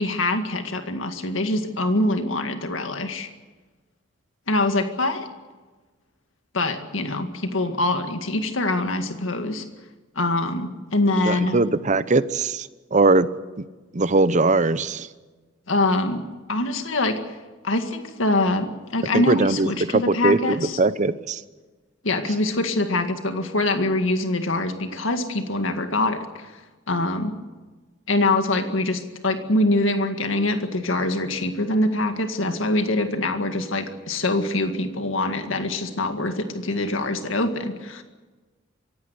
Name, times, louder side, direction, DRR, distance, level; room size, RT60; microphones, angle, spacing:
voice 1, 0.0-3.3 4.5-5.3 6.5-9.7 10.2-11.6 15.7-16.2 16.5-17.4 17.6-20.8 22.0-26.6 26.9-27.4 28.1-38.0, left 2 dB, 85° left, 7 dB, 2.0 m, -24 dB
voice 2, 11.2-13.3 13.6-13.7 13.9-15.1 19.1-21.4, right 3 dB, 40° right, 15 dB, 0.8 m, -21 dB
24.5 x 17.0 x 8.1 m, 1.3 s
head